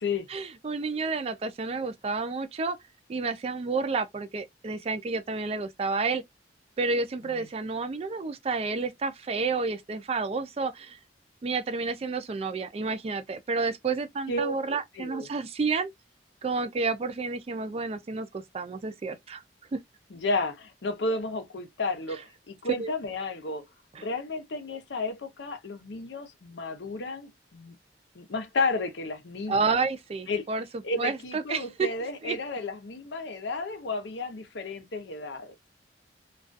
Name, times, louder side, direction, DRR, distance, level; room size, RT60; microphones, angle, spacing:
voice 1, 0.3-2.8 3.1-6.2 6.8-11.0 11.4-15.9 16.4-19.4 19.7-19.8 22.8-22.9 23.9-24.1 29.5-30.6 31.0-31.9 32.2-32.4, right 4 dB, 35° right, 0.3 m, -30 dB
voice 2, 14.3-15.3 20.1-23.6 24.0-27.8 28.1-29.9 30.3-30.5 30.8-35.5, left 3 dB, 85° left, 0.6 m, -32 dB
2.3 x 2.3 x 2.4 m
head